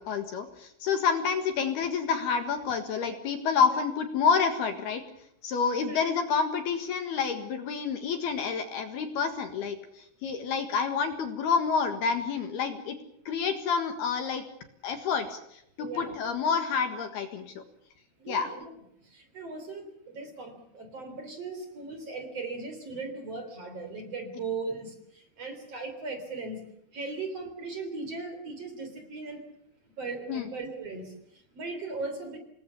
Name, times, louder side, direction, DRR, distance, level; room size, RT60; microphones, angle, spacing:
voice 1, 0.0-5.0 5.4-13.0 13.3-14.4 14.8-15.4 15.8-17.5 18.3-18.5 30.3-30.5, left 6 dB, 65° left, 7 dB, 3.3 m, -28 dB
voice 2, 15.8-16.1 18.2-18.7 19.0-29.4 30.0-32.4, right 3 dB, 35° right, 7 dB, 4.0 m, -38 dB
28.0 x 20.0 x 7.1 m, 0.76 s
omnidirectional pair, 5.6 m